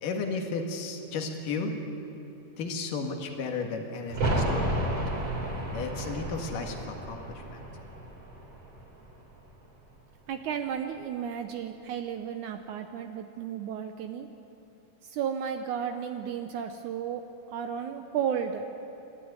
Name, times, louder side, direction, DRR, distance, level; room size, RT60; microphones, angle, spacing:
voice 1, 0.0-1.8 2.6-4.9 5.7-7.7, left 4 dB, 80° left, 4 dB, 3.3 m, -34 dB
sound 1, 4.1-9.7 9.9-10.0, right 1 dB, 40° right, 3.7 m, -32 dB
voice 2, 10.3-14.3 15.0-17.2 17.5-18.7, right 8 dB, 75° right, 6 dB, 2.2 m, -33 dB
29.0 x 12.5 x 9.7 m, 2.9 s
omnidirectional pair, 3.8 m